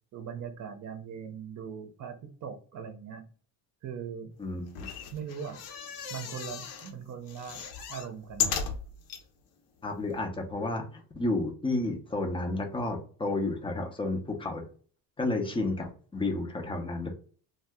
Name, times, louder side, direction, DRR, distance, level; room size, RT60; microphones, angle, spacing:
voice 1, 0.1-3.2 3.8-4.3 5.1-5.6 6.1-7.6 7.9-8.6, right 7 dB, 45° right, 7 dB, 0.6 m, -40 dB
voice 2, 4.4-4.9 9.8-14.6 15.2-17.1, left 2 dB, 15° left, 2 dB, 0.4 m, -31 dB
sound 1, 4.7-6.9 7.3-9.2 9.8-9.9 10.1-10.2, left 6 dB, 75° left, 0.8 m, -35 dB
2.7 x 2.2 x 3.3 m, 0.43 s
cardioid pair, 150°, 40 cm